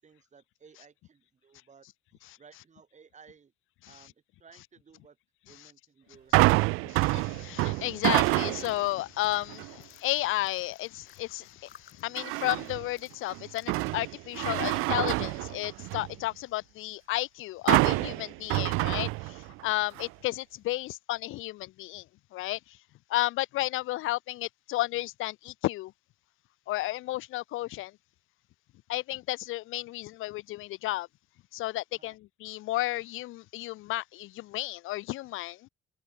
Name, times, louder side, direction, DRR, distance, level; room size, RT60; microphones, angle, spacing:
voice 1, 0.0-3.5 3.9-5.2 5.5-6.6 31.9-32.2, right 6 dB, 35° right, 7.4 m, -57 dB
sound 1, 6.3-8.8 9.3-9.7 12.2-12.8 13.3-16.1 17.7-19.6 20.0-20.1, right 24 dB, 85° right, 0.4 m, -27 dB
voice 2, 6.9-22.0 22.3-22.8 23.1-25.9 26.7-27.9 28.9-31.1 31.5-35.7, left 17 dB, 70° left, 0.8 m, -33 dB
sound 2, 8.5-14.0, left 10 dB, 50° left, 3.9 m, -57 dB
cardioid pair, 105°, 21 cm